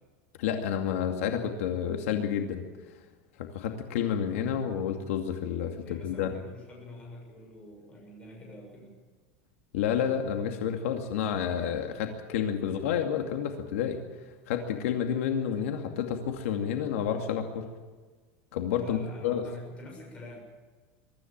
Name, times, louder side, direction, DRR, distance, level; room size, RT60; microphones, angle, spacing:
voice 1, 0.4-2.6 3.4-6.3 9.7-14.0 14.5-17.7 18.5-19.4, left 8 dB, 75° left, 4 dB, 2.4 m, -30 dB
voice 2, 5.8-8.9 18.8-20.4, left 2 dB, 15° left, 0 dB, 6.8 m, -46 dB
23.0 x 14.0 x 9.0 m, 1.4 s
supercardioid pair, 175°, 7 cm